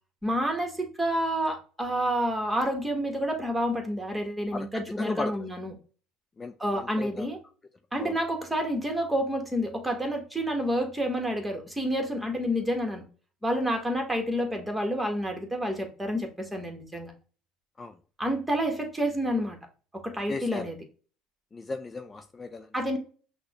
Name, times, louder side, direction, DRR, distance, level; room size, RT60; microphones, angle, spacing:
voice 1, 0.2-5.7 6.6-7.4 7.9-13.0 13.4-17.1 18.2-19.6 19.9-20.8 22.7-23.0, equal, 10° right, 1.3 m, -29 dB
voice 2, 5.0-5.5 6.4-7.3 7.9-8.1 17.8-17.9 20.3-20.7 21.5-22.7, left 3 dB, 25° left, 0.4 m, -36 dB
5.9 x 2.2 x 2.9 m
supercardioid pair, 80°, 0 cm